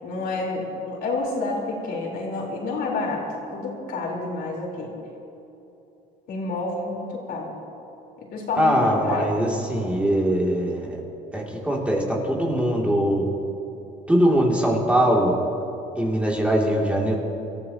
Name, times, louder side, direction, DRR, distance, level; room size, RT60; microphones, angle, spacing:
voice 1, 0.0-3.2 3.5-4.9 6.3-7.5 8.2-9.3, left 3 dB, 70° left, -2 dB, 4.1 m, -29 dB
voice 2, 8.6-11.0 11.3-13.3 14.1-15.4 16.0-17.2, equal, 5° right, -2 dB, 2.8 m, -21 dB
26.0 x 14.5 x 3.0 m, 3.0 s
cardioid pair, 110°, 17 cm